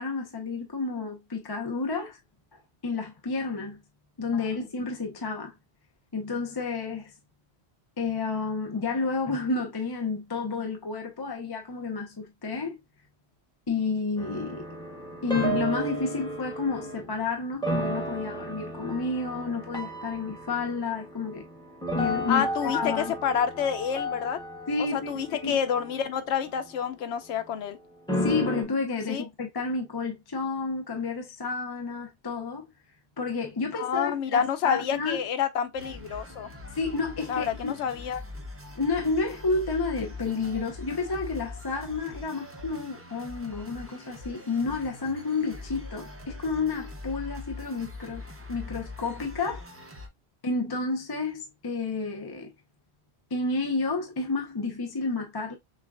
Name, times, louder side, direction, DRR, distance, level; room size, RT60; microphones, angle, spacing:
voice 1, 0.0-2.2 2.5-3.8 4.2-5.5 6.1-7.1 8.0-12.8 13.7-14.7 15.2-21.5 22.0-23.1 24.7-25.6 28.2-32.6 33.2-35.2 36.7-37.7 38.7-48.2 48.5-49.7 50.4-52.5 53.3-55.5, left 4 dB, 30° left, 0.5 m, -30 dB
sound 1, 14.2-17.1 17.6-26.8 28.1-28.6, equal, 5° left, 1.0 m, -33 dB
voice 2, 22.3-24.4 24.8-27.8 29.1-29.2 33.8-36.5 37.3-38.2, left 8 dB, 85° left, 0.9 m, -28 dB
sound 2, 35.7-50.1, left 2 dB, 15° right, 0.6 m, -42 dB
6.4 x 2.3 x 2.4 m
omnidirectional pair, 1.1 m